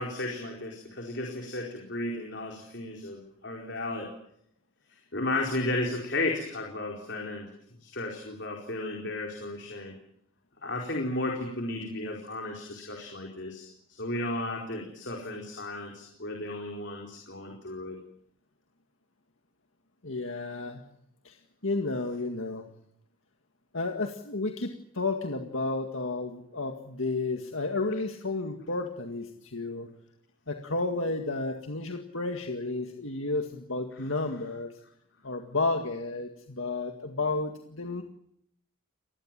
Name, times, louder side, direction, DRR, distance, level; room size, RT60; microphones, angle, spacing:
voice 1, 0.0-4.1 5.1-7.5 7.8-10.0 10.6-13.7 14.0-18.0, left 2 dB, 55° left, 0 dB, 4.5 m, -34 dB
voice 2, 20.0-20.8 21.2-21.4 21.6-22.7 23.7-29.9 30.5-34.7 35.2-38.0, left 3 dB, 70° left, 4 dB, 2.0 m, -32 dB
28.0 x 20.0 x 7.6 m, 0.72 s
head